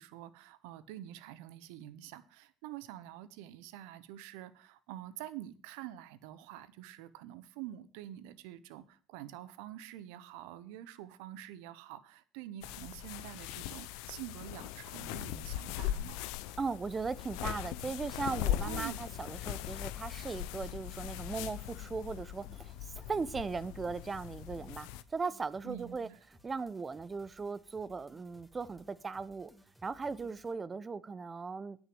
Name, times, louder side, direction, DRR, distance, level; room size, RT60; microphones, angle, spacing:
voice 1, 0.0-16.2 18.6-19.0 25.6-26.2, right 13 dB, 80° right, 0.8 m, -47 dB
sound 1, 12.6-25.0, left 13 dB, 80° left, 0.5 m, -40 dB
voice 2, 16.6-26.1 26.4-29.5 29.8-31.9, right 4 dB, 30° right, 0.7 m, -38 dB
sound 2, 19.3-30.6, equal, 5° right, 2.3 m, -62 dB
9.2 x 6.2 x 7.7 m
hypercardioid pair, 70°, 0 cm